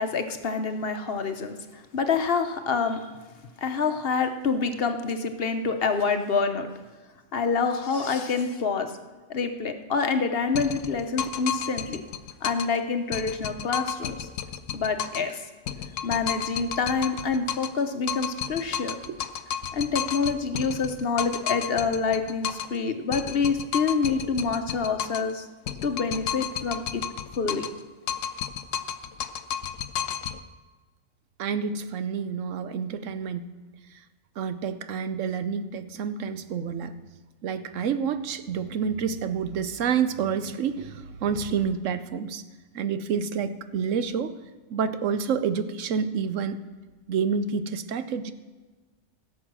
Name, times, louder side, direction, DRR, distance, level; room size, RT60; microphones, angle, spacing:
voice 1, 0.0-3.1 3.6-6.7 7.3-8.9 9.3-12.0 12.4-14.3 14.7-15.4 16.0-19.0 19.7-25.4 25.8-27.0 27.4-27.7, left 5 dB, 55° left, 7 dB, 1.0 m, -27 dB
sound 1, 10.5-12.8 13.1-15.3 15.7-17.8 18.1-22.8 23.1-25.3 25.7-27.8 28.1-30.4, left 9 dB, 85° left, 1.0 m, -32 dB
voice 2, 18.8-19.2 31.4-33.5 34.4-36.9 37.4-42.4 42.7-44.3 44.7-46.6 47.1-48.3, right 6 dB, 90° right, 11 dB, 1.1 m, -28 dB
16.5 x 7.3 x 6.1 m, 1.3 s
omnidirectional pair, 1.3 m